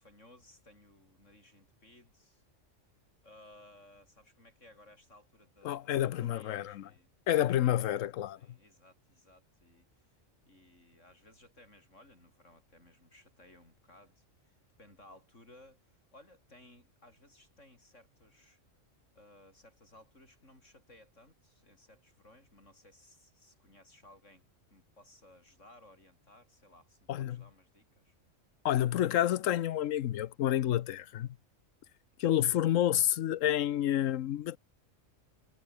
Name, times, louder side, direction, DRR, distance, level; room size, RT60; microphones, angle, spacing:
voice 1, 0.0-2.4 3.2-7.1 7.6-7.8 8.3-10.2 10.4-18.6 19.1-28.1, left 1 dB, 70° left, 8.3 m, -60 dB
voice 2, 5.6-6.9 7.3-8.4 27.1-27.4 28.6-31.3 32.2-34.6, left 12 dB, 90° left, 1.1 m, -29 dB
omnidirectional pair, 1.3 m